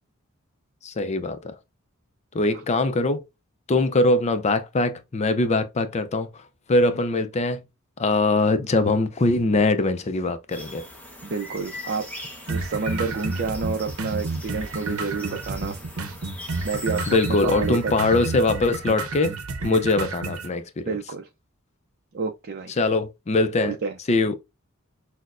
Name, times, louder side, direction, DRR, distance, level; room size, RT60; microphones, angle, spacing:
voice 1, 0.8-1.6 2.3-3.2 3.7-7.6 8.0-10.9 17.1-19.3 19.6-21.0 22.7-23.8 24.1-24.4, left 2 dB, 30° left, 0.5 m, -22 dB
sound 1, 10.5-18.8, left 1 dB, 5° left, 0.8 m, -41 dB
voice 2, 11.2-12.0 12.5-15.7 16.6-17.8 20.9-21.3 22.1-22.7 23.6-24.0, right 4 dB, 50° right, 0.5 m, -29 dB
sound 2, 12.5-20.5, right 3 dB, 85° right, 0.7 m, -31 dB
6.1 x 2.1 x 2.4 m
head